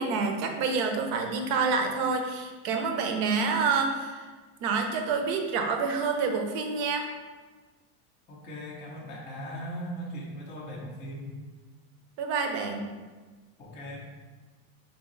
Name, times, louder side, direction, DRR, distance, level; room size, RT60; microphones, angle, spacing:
voice 1, 0.0-4.2 4.6-7.1 12.2-12.8, right 4 dB, 55° right, 4 dB, 0.6 m, -28 dB
voice 2, 8.3-11.3 13.6-14.0, equal, 20° left, -4 dB, 0.4 m, -39 dB
4.0 x 2.7 x 3.7 m, 1.3 s
supercardioid pair, 155°, 42 cm